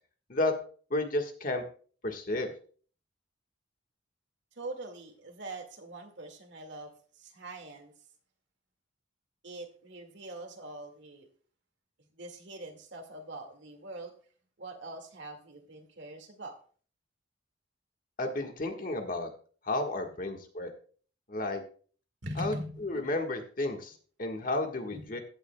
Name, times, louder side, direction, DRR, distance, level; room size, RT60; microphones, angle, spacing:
voice 1, 0.9-1.6 2.0-2.5 18.2-19.3 19.6-20.7 21.3-21.6 22.4-22.5 22.8-25.2, left 2 dB, 50° left, 4 dB, 1.5 m, -32 dB
voice 2, 4.5-7.9 9.4-11.3 12.0-14.2 14.6-16.6 22.2-23.2 24.9-25.2, right 1 dB, 75° right, 4 dB, 2.0 m, -43 dB
15.5 x 8.7 x 2.2 m, 0.43 s
head